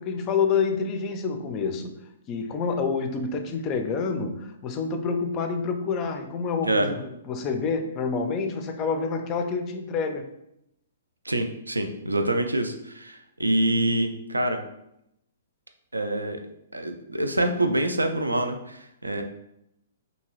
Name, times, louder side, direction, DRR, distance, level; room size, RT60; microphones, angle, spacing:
voice 1, 0.0-1.9 2.3-10.3, left 5 dB, 30° left, 6 dB, 0.3 m, -28 dB
voice 2, 11.2-14.6 15.9-16.4 16.7-19.2, right 1 dB, 85° right, 6 dB, 0.3 m, -26 dB
2.7 x 2.6 x 2.9 m, 0.81 s
figure-of-eight pair, 120°, 0 cm